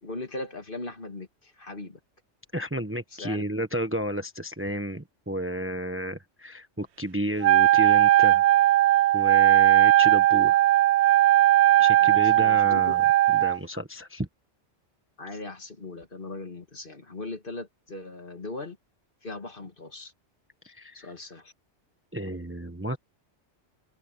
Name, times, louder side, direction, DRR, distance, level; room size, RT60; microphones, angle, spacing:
voice 1, 0.0-2.0 3.1-3.4 12.0-13.0 15.2-18.8 19.2-20.1 20.9-21.5, left 2 dB, 45° left, 2.3 m, -39 dB
voice 2, 2.5-8.5 9.1-10.6 11.8-13.0 13.3-14.3 20.6-21.1 22.1-23.0, equal, 10° right, 1.1 m, -32 dB
Wind instrument woodwind instrument, 7.4-13.6, right 13 dB, 70° right, 0.8 m, -19 dB
open air
omnidirectional pair, 1.2 m